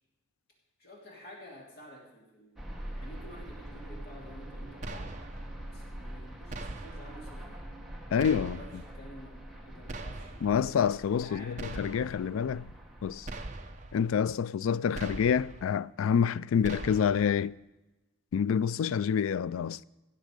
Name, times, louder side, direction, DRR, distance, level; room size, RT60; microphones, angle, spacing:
voice 1, 0.8-5.1 5.7-7.4 8.4-9.3 9.6-10.5 11.2-11.6, equal, 50° left, 2.9 m, -50 dB
sound 1, 2.6-14.1, right 1 dB, ahead, 1.5 m, -45 dB
sound 2, 4.8-5.5 6.5-7.2 8.2-8.9 9.9-10.6 11.6-12.3 13.3-14.0 14.9-15.6 16.6-17.3, right 2 dB, 35° right, 0.8 m, -41 dB
voice 2, 8.1-8.6 10.4-12.7 13.0-13.3 13.9-17.6 18.3-19.8, left 7 dB, 75° left, 0.3 m, -27 dB
17.0 x 7.4 x 5.1 m
head